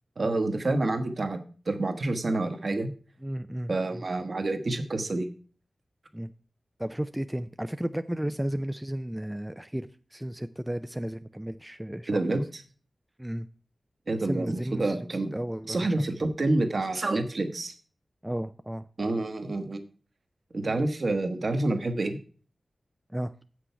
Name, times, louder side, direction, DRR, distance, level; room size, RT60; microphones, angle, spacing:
voice 1, 0.2-1.4 1.7-2.9 3.7-5.3 12.1-12.4 14.1-15.3 15.7-17.7 19.0-19.8 20.5-22.2, right 2 dB, 55° right, 7 dB, 1.2 m, -28 dB
voice 2, 3.2-4.0 6.1-6.3 6.8-12.4 13.2-13.5 14.2-15.1 15.3-16.0 18.2-18.9 23.1-23.3, right 1 dB, 10° right, 9 dB, 0.4 m, -34 dB
7.8 x 6.2 x 5.7 m, 0.40 s
wide cardioid pair, 85°, 0 cm